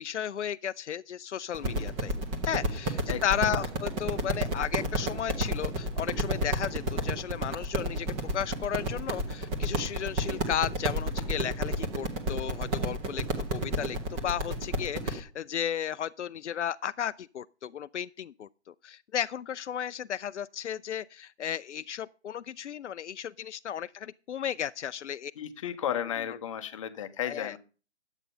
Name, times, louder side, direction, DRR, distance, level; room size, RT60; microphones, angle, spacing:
voice 1, 0.0-2.2 2.4-25.3 27.2-27.6, left 9 dB, 90° left, 0.5 m, -34 dB
sound 1, 1.5-15.2, right 1 dB, 15° right, 1.0 m, -31 dB
voice 2, 3.1-3.5 25.4-27.6, left 10 dB, 30° left, 0.9 m, -34 dB
10.5 x 8.1 x 5.4 m
hypercardioid pair, 155°, 34 cm